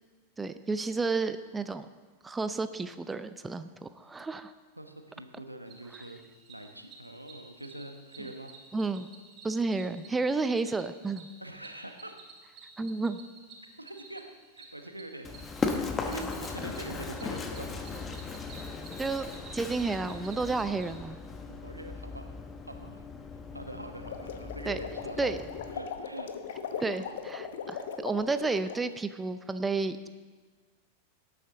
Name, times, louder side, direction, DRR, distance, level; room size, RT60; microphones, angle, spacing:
voice 1, 0.4-1.9 2.2-4.5 8.7-9.1 9.4-11.3 12.8-13.2 19.0-19.3 19.5-21.2 24.7-24.8 25.2-25.4 26.8-30.1, right 3 dB, 10° right, 12 dB, 0.5 m, -31 dB
voice 2, 4.8-6.2 6.5-8.5 11.4-12.1 13.8-14.3 14.6-15.4 16.1-17.9 21.4-22.3 22.6-26.3 26.9-27.2, right 1 dB, 85° right, 5 dB, 1.1 m, -44 dB
Cricket, 5.7-20.9, right 4 dB, 35° right, 2.9 m, -52 dB
Run, 15.2-25.8, left 4 dB, 20° left, 1.1 m, -38 dB
sound 1, 23.9-28.8, left 6 dB, 60° left, 0.9 m, -39 dB
18.0 x 9.2 x 3.9 m, 1.4 s
figure-of-eight pair, 90°, 0 cm